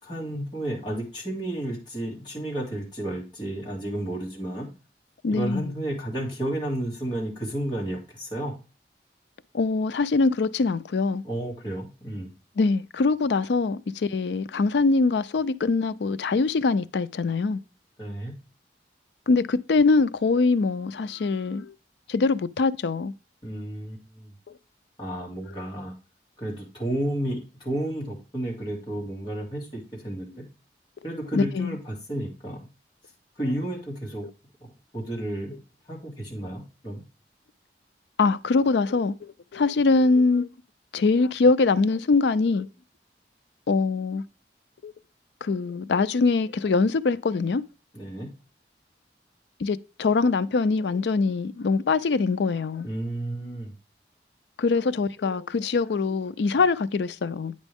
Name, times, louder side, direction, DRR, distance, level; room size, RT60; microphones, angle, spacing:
voice 1, 0.0-4.7 5.3-8.5 11.2-12.3 18.0-18.3 23.4-24.3 25.0-25.9 26.4-30.5 31.0-32.6 33.4-34.3 34.6-35.6 35.9-37.0 47.9-48.3 52.8-53.7, right 1 dB, 25° left, 2.3 m, -32 dB
voice 2, 5.2-5.7 9.5-11.2 12.6-17.6 19.3-21.7 22.1-23.1 24.5-24.6 31.3-31.8 38.2-40.5 40.9-42.7 43.7-44.2 44.8-44.9 45.4-47.6 49.6-52.9 54.6-57.5, left 4 dB, 80° left, 0.4 m, -23 dB
9.0 x 5.2 x 3.5 m
head